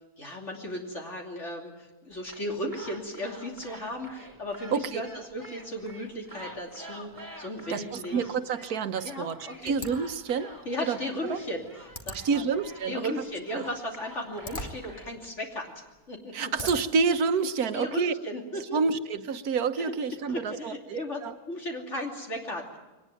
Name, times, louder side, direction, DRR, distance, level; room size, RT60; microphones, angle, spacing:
voice 1, 0.2-8.3 9.0-9.7 10.6-12.4 12.9-15.7 16.1-16.5 17.7-18.8 19.8-19.9 20.3-21.2 21.5-22.8, left 1 dB, 50° left, 1 dB, 3.2 m, -36 dB
sound 1, 2.1-15.2, right 1 dB, 15° right, 2.4 m, -48 dB
voice 2, 4.7-5.0 7.7-9.4 9.6-10.5 10.9-11.0 11.3-11.4 12.1-13.1 13.5-13.6 16.3-18.1 18.7-20.7 21.2-21.3, right 5 dB, 80° right, 10 dB, 1.5 m, -28 dB
sound 2, 9.7-17.1, left 1 dB, 25° left, 2.1 m, -45 dB
23.0 x 19.5 x 9.0 m, 1.1 s
omnidirectional pair, 1.6 m